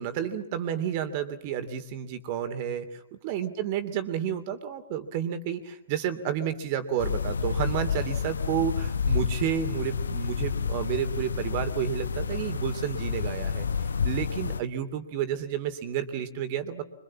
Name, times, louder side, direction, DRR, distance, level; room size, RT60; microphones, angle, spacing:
voice 1, 0.0-16.8, right 9 dB, 35° right, 10 dB, 2.8 m, -31 dB
sound 1, 7.0-14.6, left 5 dB, 70° left, 1.0 m, -29 dB
26.5 x 24.5 x 7.4 m, 0.80 s
figure-of-eight pair, 120°, 0 cm